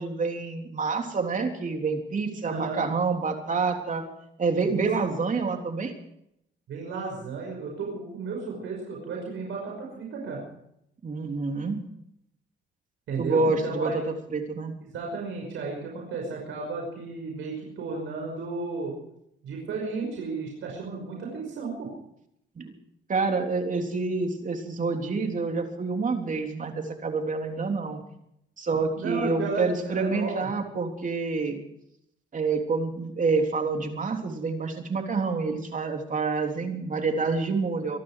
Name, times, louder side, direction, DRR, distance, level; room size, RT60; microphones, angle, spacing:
voice 1, 0.0-4.0 4.4-5.9 11.0-11.8 13.2-14.7 22.6-22.7 23.1-28.0 28.6-31.6 32.3-38.0, right 4 dB, 40° right, 4 dB, 3.5 m, -27 dB
voice 2, 2.4-2.9 4.7-4.9 6.7-10.4 13.1-14.1 14.9-18.9 19.4-21.9 28.7-30.5, right 4 dB, 80° right, 0 dB, 5.6 m, -33 dB
25.0 x 11.5 x 4.9 m, 0.76 s
cardioid pair, 90°, 20 cm